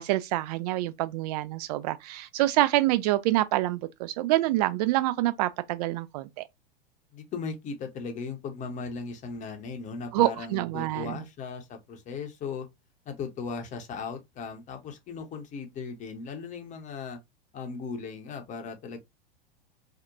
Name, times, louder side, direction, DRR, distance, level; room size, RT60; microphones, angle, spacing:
voice 1, 0.0-6.4 10.1-11.2, right 16 dB, 45° right, 0.4 m, -26 dB
voice 2, 7.1-12.7 13.1-17.2 17.5-19.0, left 5 dB, 25° left, 0.7 m, -37 dB
2.8 x 2.1 x 2.4 m
figure-of-eight pair, 90°, 29 cm